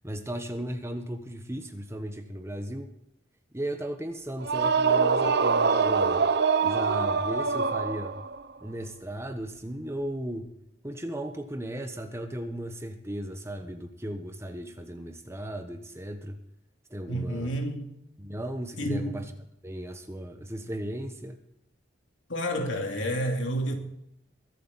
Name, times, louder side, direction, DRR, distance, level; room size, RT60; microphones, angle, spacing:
voice 1, 0.0-2.9 3.5-6.3 6.6-8.1 8.6-10.5 10.8-16.4 16.9-17.5 18.2-19.3 19.6-21.4, right 1 dB, 15° right, 1.2 m, -36 dB
sound 1, 4.4-8.4, right 5 dB, 60° right, 0.8 m, -24 dB
voice 2, 17.1-17.9 18.8-19.2 22.3-23.7, equal, 85° left, 2.7 m, -30 dB
23.0 x 8.4 x 4.2 m
head